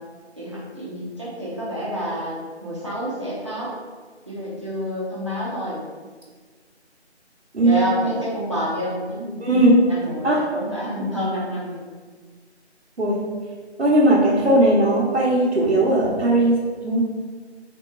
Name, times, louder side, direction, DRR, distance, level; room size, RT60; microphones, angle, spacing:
voice 1, 0.4-3.7 4.3-5.8 7.6-9.5 9.9-11.8, equal, 25° right, -8 dB, 0.8 m, -28 dB
voice 2, 9.4-9.8 10.2-10.4 13.0-13.2 13.8-16.6 16.8-17.0, right 1 dB, 75° right, -7 dB, 1.1 m, -17 dB
3.8 x 2.9 x 3.7 m, 1.4 s
figure-of-eight pair, 165°, 34 cm